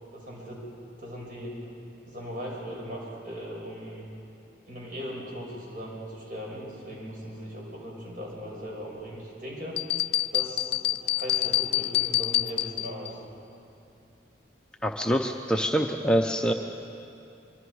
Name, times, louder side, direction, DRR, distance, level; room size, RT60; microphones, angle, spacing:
voice 1, 0.1-0.6 1.0-1.7 2.1-4.1 4.7-9.8 10.3-13.2, equal, 50° right, -3 dB, 5.7 m, -39 dB
sound 1, 9.8-13.1, left 14 dB, 60° left, 0.4 m, -27 dB
voice 2, 14.8-16.5, equal, 5° left, 2 dB, 0.7 m, -25 dB
24.0 x 23.5 x 4.8 m, 2.7 s
head